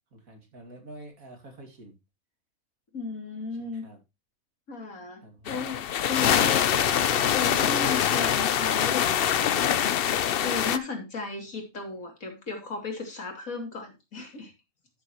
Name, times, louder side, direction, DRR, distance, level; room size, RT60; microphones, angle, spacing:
voice 1, 0.1-2.0 3.8-4.0 5.2-5.6, right 1 dB, 80° right, 3 dB, 2.9 m, -47 dB
voice 2, 2.9-3.8 4.7-5.2 5.5-5.8 6.1-10.1 10.4-14.5, left 4 dB, 75° left, 2 dB, 3.3 m, -35 dB
sound 1, 5.5-10.8, left 9 dB, 55° left, 0.7 m, -24 dB
13.0 x 6.9 x 3.0 m, 0.25 s
omnidirectional pair, 1.4 m